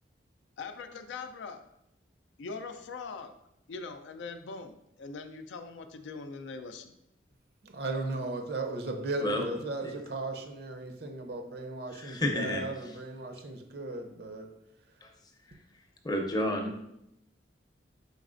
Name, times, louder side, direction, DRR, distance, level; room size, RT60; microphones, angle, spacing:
voice 1, 0.6-1.6 2.4-3.3 3.7-6.9, left 4 dB, 85° left, 7 dB, 0.4 m, -42 dB
voice 2, 7.6-14.5 14.9-15.0, right 2 dB, 60° right, 5 dB, 0.6 m, -36 dB
voice 3, 11.9-12.6 15.0-15.1 15.5-16.8, left 1 dB, 20° left, 2 dB, 0.6 m, -32 dB
5.2 x 4.0 x 2.5 m, 0.81 s
head